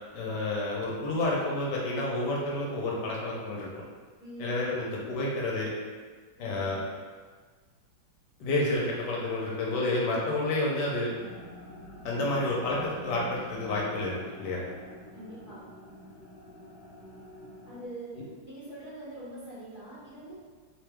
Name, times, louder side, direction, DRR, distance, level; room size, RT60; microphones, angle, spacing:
voice 1, 0.1-3.7 4.4-5.7 6.4-6.8 8.4-11.1 12.0-14.6, left 2 dB, 70° left, -4 dB, 1.2 m, -30 dB
voice 2, 4.2-4.6 6.4-6.8 15.1-15.6 17.6-18.1 18.4-20.3, right 1 dB, 30° right, -13 dB, 1.5 m, -43 dB
sound 1, 11.1-17.8, equal, 55° right, 1.2 m, -46 dB
3.0 x 3.0 x 3.4 m, 1.5 s
omnidirectional pair, 2.1 m